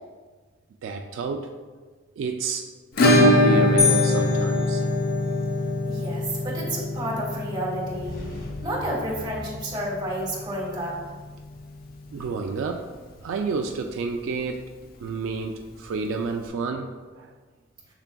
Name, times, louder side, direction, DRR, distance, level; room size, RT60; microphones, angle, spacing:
voice 1, 0.8-1.5 2.2-2.6 3.0-4.8 12.1-12.9 13.2-14.7 15.0-17.3, right 4 dB, 75° right, 4 dB, 0.3 m, -30 dB
Acoustic guitar / Strum, 3.0-11.6 11.8-11.9 12.2-12.3 12.7-12.8 14.8-14.9 16.1-16.2, left 1 dB, 50° left, 0.4 m, -23 dB
sound 1, 3.8-5.6, left 4 dB, 65° left, 1.1 m, -27 dB
voice 2, 5.9-8.1 8.6-11.0, right 1 dB, 25° right, -5 dB, 1.3 m, -30 dB
sound 2, 7.7-10.6, left 1 dB, 85° left, 1.3 m, -41 dB
7.0 x 3.3 x 2.2 m, 1.4 s
head